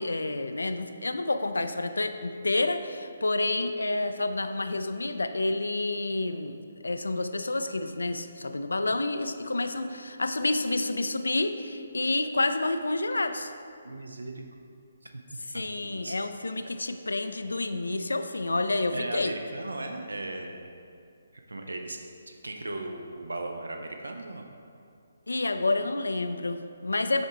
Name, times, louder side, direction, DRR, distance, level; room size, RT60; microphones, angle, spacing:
voice 1, 0.0-6.6 6.8-13.5 15.5-19.3 25.3-27.2, left 2 dB, 70° left, 9 dB, 0.3 m, -29 dB
voice 2, 13.8-14.4 15.1-15.2 15.5-16.2 18.9-20.7 21.5-22.0 22.3-24.5, right 2 dB, 70° right, 4 dB, 0.5 m, -37 dB
6.3 x 4.5 x 3.4 m, 2.4 s
figure-of-eight pair, 140°, 0 cm